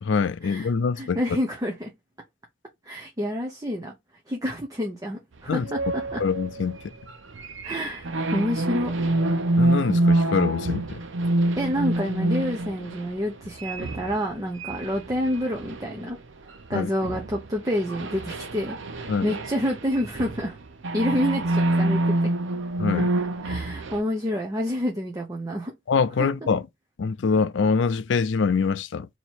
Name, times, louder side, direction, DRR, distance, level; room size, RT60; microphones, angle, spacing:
voice 1, 0.0-1.2 5.5-5.7 6.2-6.8 9.6-11.0 16.7-16.9 19.1-19.3 22.8-23.1 25.9-26.6 27.0-29.1, left 5 dB, 65° left, 0.4 m, -24 dB
voice 2, 1.0-1.9 2.9-3.9 4.3-6.2 7.6-8.9 11.6-16.2 16.7-20.6 20.9-22.3 23.4-25.7, equal, 20° right, 0.7 m, -28 dB
sound 1, 5.6-16.7 17.0-24.0, right 1 dB, 75° right, 0.6 m, -27 dB
2.9 x 2.9 x 4.4 m
head